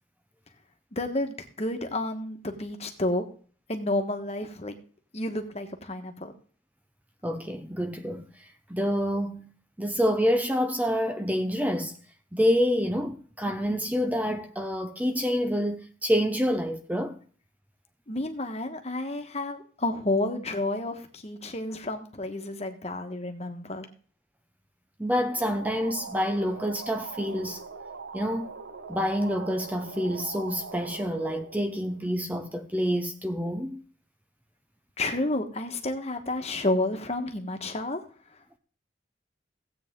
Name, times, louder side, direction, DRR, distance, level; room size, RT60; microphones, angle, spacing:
voice 1, 0.9-3.2 3.7-4.7 5.1-6.3 18.1-23.9 35.0-38.0, left 2 dB, 35° left, 1.5 m, -30 dB
voice 2, 7.2-9.5 9.8-12.0 12.3-17.2 25.0-27.6 28.1-28.5 28.9-33.8, equal, 10° right, 0.7 m, -27 dB
sound 1, 25.1-32.5, right 4 dB, 70° right, 0.8 m, -42 dB
16.5 x 8.6 x 3.8 m
head